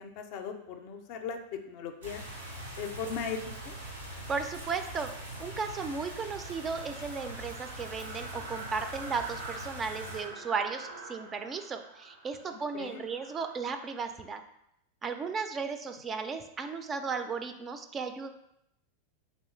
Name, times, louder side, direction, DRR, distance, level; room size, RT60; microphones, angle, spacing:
voice 1, 0.0-1.4 1.7-2.2 2.8-3.4 3.7-3.8 12.7-13.1, left 6 dB, 55° left, 6 dB, 0.4 m, -38 dB
sound 1, 2.0-10.2, right 1 dB, 90° right, 1.1 m, -43 dB
voice 2, 4.3-5.1 5.4-14.4 15.0-18.3, right 5 dB, 25° right, 8 dB, 0.3 m, -35 dB
sound 2, 5.6-14.3, right 3 dB, 75° right, 0.7 m, -47 dB
3.1 x 3.1 x 3.1 m, 0.79 s
hypercardioid pair, 100°, 0 cm